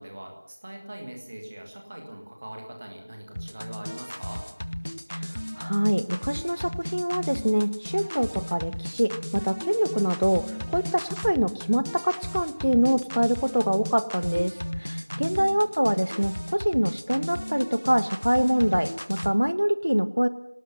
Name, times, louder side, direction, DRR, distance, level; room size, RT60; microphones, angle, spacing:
voice 1, 0.0-4.5 15.1-15.6, right 1 dB, 10° right, 2 dB, 1.7 m, -41 dB
sound 1, 3.4-19.3, equal, 45° left, 1.3 m, -35 dB
voice 2, 5.1-20.3, equal, 50° right, 12 dB, 1.6 m, -25 dB
24.5 x 18.5 x 8.0 m, 0.72 s
figure-of-eight pair, 180°, 0 cm